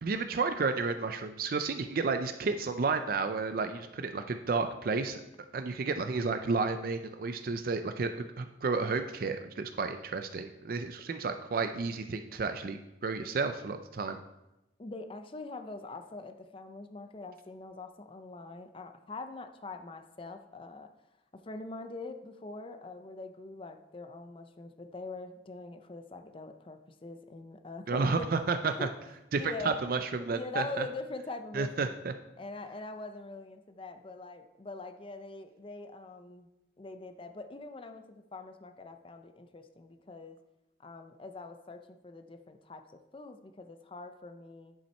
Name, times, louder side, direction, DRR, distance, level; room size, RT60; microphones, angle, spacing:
voice 1, 0.0-5.2 5.5-14.2 27.9-28.9 29.3-30.8 31.5-32.1, right 4 dB, 55° right, 8 dB, 0.4 m, -31 dB
voice 2, 14.8-20.9 21.3-29.0 29.4-29.9 30.2-31.9 32.4-36.5 36.8-40.4 40.8-44.7, left 3 dB, 30° left, 7 dB, 0.5 m, -43 dB
10.0 x 5.6 x 4.3 m, 0.95 s
head